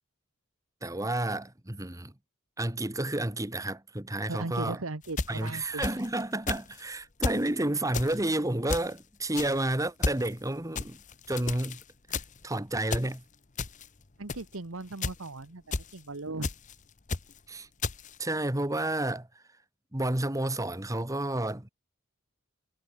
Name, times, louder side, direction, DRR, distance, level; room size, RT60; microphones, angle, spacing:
voice 1, 0.8-2.1 2.6-4.8 5.3-11.0 11.3-11.8 12.1-13.2 17.5-17.7 18.2-19.3 19.9-21.7, right 1 dB, 15° right, 1.5 m, -30 dB
voice 2, 4.3-5.9 14.2-16.5, right 2 dB, 85° right, 1.4 m, -38 dB
sound 1, 5.0-6.2 6.5-6.8 7.2-7.5 7.9-8.2 8.7-9.0 9.3-9.6 10.0-10.3 10.8-11.8 12.1-12.4 12.9-13.2 13.6-13.9 14.3-14.5 15.0-15.3 15.7-16.0 16.4-16.7 17.1-17.4 17.8-18.2, left 4 dB, 35° left, 0.9 m, -33 dB
head